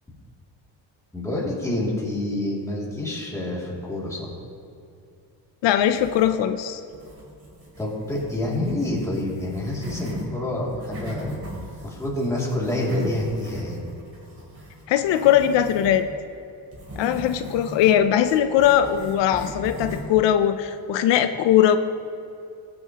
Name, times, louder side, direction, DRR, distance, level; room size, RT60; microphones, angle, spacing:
voice 1, 1.1-4.3 7.8-11.3 11.8-13.8, left 1 dB, 5° left, -5 dB, 2.6 m, -27 dB
voice 2, 5.6-6.8 14.9-16.1 17.0-21.8, left 10 dB, 80° left, 9 dB, 0.6 m, -20 dB
sound 1, 5.7-6.6 6.9-10.3 10.6-16.0 16.7-20.2, equal, 30° right, 3.1 m, -39 dB
21.0 x 7.7 x 2.9 m, 2.6 s
cardioid pair, 150°, 42 cm